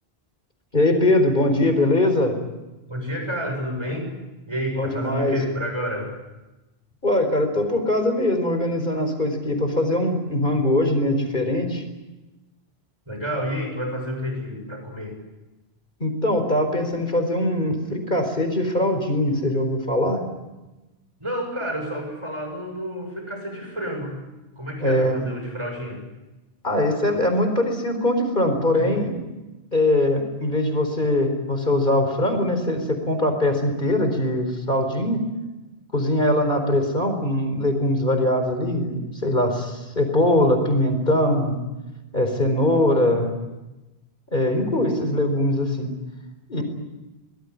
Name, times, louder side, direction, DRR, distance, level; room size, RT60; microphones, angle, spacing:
voice 1, 0.7-2.3 4.8-5.4 7.0-11.8 16.0-20.2 24.8-25.2 26.6-29.1 29.7-35.2 35.9-41.6 42.1-43.3 44.3-45.9 46.5-46.6, left 1 dB, 50° left, 6 dB, 4.4 m, -22 dB
voice 2, 2.9-4.1 4.5-6.1 13.1-15.2 21.2-24.3 24.6-26.0 28.6-29.0 46.6-46.7, equal, 25° right, 3 dB, 6.9 m, -30 dB
24.0 x 20.5 x 9.7 m, 1.1 s
omnidirectional pair, 1.1 m